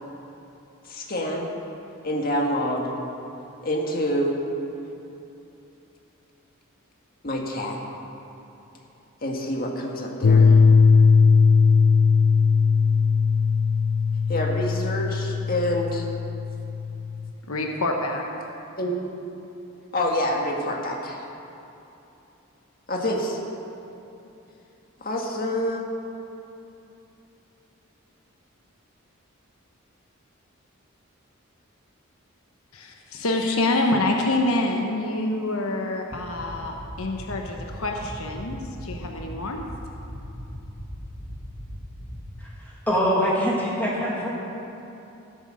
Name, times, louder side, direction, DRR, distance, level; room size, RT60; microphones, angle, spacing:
voice 1, 0.9-1.5 2.0-2.9 3.6-4.4 7.2-7.8 9.2-10.6 14.3-16.0 18.8-19.0 19.9-21.2 22.9-23.4 25.0-25.8, equal, 45° left, 0 dB, 1.8 m, -27 dB
sound 1, 10.2-17.3, left 5 dB, 65° left, 0.4 m, -19 dB
voice 2, 17.5-18.5 32.7-39.7, left 2 dB, 85° left, 2 dB, 1.1 m, -26 dB
sound 2, 36.1-42.2, equal, 25° left, 1.8 m, -36 dB
voice 3, 42.9-44.3, equal, 10° left, -6 dB, 2.2 m, -23 dB
15.0 x 8.2 x 6.5 m, 2.9 s
head